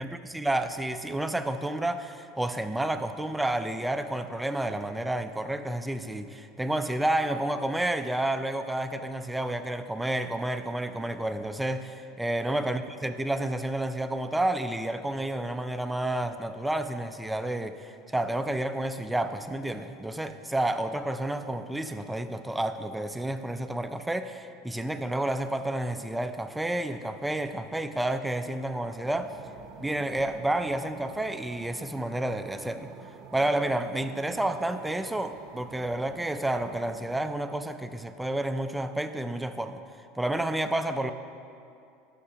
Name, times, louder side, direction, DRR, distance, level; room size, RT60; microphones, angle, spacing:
voice 1, 0.0-29.3 29.8-32.9 33.3-39.8 40.1-41.1, right 1 dB, 5° right, 9 dB, 0.4 m, -30 dB
sound 1, 29.0-37.3, right 6 dB, 45° right, 0.6 m, -48 dB
11.5 x 6.5 x 2.9 m, 2.6 s
supercardioid pair, 120°, 0 cm